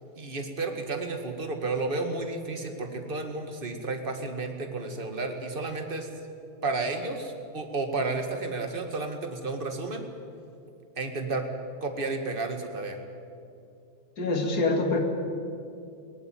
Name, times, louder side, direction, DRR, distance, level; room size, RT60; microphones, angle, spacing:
voice 1, 0.2-6.1 6.6-10.1 11.0-11.5 11.8-13.0, right 3 dB, 25° right, 5 dB, 1.9 m, -32 dB
voice 2, 14.2-15.0, left 3 dB, 50° left, 3 dB, 2.8 m, -25 dB
20.0 x 17.5 x 9.3 m, 2.5 s
omnidirectional pair, 2.2 m